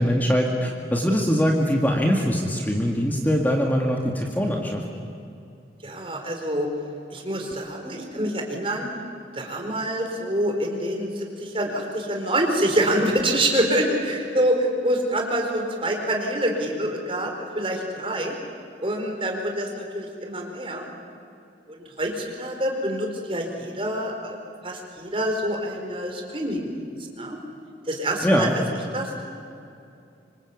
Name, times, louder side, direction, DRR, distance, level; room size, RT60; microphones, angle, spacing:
voice 1, 0.0-4.8 8.2-8.3 28.2-28.5, equal, 10° left, 1 dB, 2.0 m, -22 dB
voice 2, 5.8-6.7 7.1-8.9 9.3-18.3 18.8-20.9 21.7-24.4 24.6-27.4 27.9-29.3, right 1 dB, 30° right, 2 dB, 4.4 m, -26 dB
26.0 x 25.5 x 8.5 m, 2.6 s
head